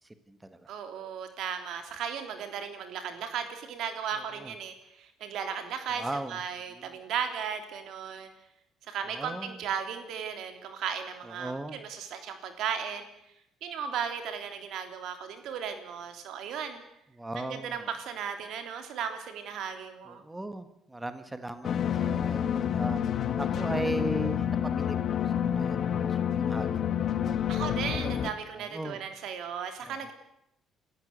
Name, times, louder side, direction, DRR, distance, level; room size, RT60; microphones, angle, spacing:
voice 1, 0.0-0.6 4.2-4.5 5.9-6.4 6.7-7.0 9.1-9.6 11.2-11.8 17.1-17.9 20.1-22.4 22.7-23.0 23.4-26.9 28.6-29.0 29.8-30.0, right 1 dB, 10° right, 10 dB, 1.5 m, -38 dB
voice 2, 0.7-8.3 8.9-13.1 13.6-16.8 17.3-20.2 27.5-30.1, right 7 dB, 75° right, 7 dB, 3.4 m, -36 dB
sound 1, 21.6-28.3, left 9 dB, 55° left, 1.3 m, -28 dB
28.0 x 14.0 x 8.2 m, 0.81 s
cardioid pair, 105°, 0 cm